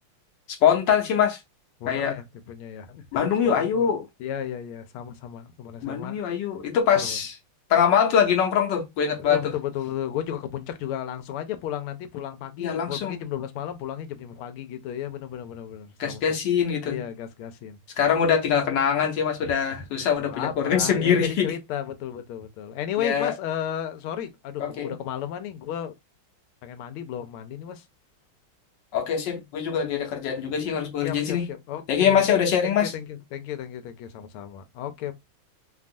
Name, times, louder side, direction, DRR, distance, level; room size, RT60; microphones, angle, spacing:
voice 1, 0.5-1.4 1.9-2.1 3.1-4.0 5.8-7.3 7.7-9.5 12.6-13.2 16.0-17.0 18.0-21.5 23.0-23.3 24.6-24.9 28.9-31.5 31.9-32.9, left 8 dB, 65° left, 1.3 m, -23 dB
voice 2, 1.8-3.0 3.4-3.9 4.2-6.1 7.0-7.2 9.3-16.2 16.8-17.8 19.7-25.9 26.6-27.8 31.0-32.3 32.6-35.1, left 10 dB, 85° left, 1.5 m, -34 dB
3.5 x 2.3 x 2.5 m
omnidirectional pair, 2.4 m